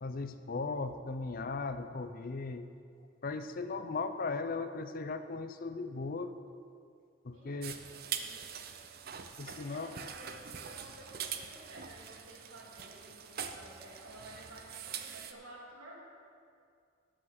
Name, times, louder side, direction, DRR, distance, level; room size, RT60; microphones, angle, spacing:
voice 1, 0.0-2.7 3.2-6.4 7.2-7.7 9.4-9.9, left 3 dB, 45° left, 10 dB, 0.5 m, -37 dB
voice 2, 7.3-7.6 8.1-8.5 9.4-16.0, right 1 dB, 85° right, -3 dB, 2.5 m, -53 dB
sound 1, 7.6-15.3, right 8 dB, 50° right, 0.6 m, -43 dB
12.5 x 6.3 x 6.0 m, 2.3 s
head